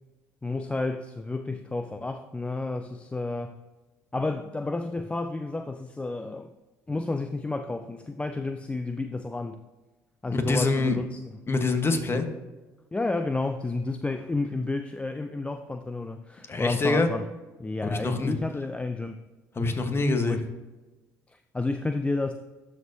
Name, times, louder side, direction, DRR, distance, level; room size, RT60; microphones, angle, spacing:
voice 1, 0.4-3.6 4.1-6.5 6.9-9.6 10.2-11.2 12.9-17.2 17.6-19.2 20.3-20.4 21.5-22.3, left 3 dB, 15° left, 8 dB, 0.4 m, -31 dB
voice 2, 10.3-11.0 11.5-12.3 16.5-17.1 17.9-18.3 19.6-20.4, left 3 dB, 30° left, 7 dB, 1.2 m, -25 dB
12.0 x 4.4 x 2.7 m, 1.2 s
hypercardioid pair, 60°, 8 cm